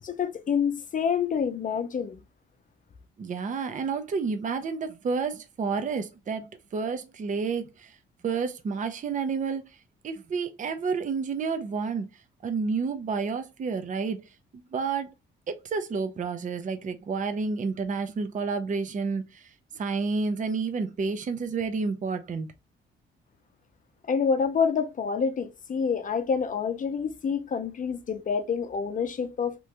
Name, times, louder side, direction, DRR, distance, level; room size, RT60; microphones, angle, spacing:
voice 1, 0.0-2.2 24.1-29.5, left 6 dB, 40° left, 0.7 m, -27 dB
voice 2, 3.2-8.0 8.2-9.6 10.0-12.1 12.4-14.2 14.5-15.1 15.5-19.5 19.7-22.5, right 5 dB, 40° right, 0.6 m, -30 dB
3.0 x 2.7 x 3.4 m
cardioid pair, 90°, 20 cm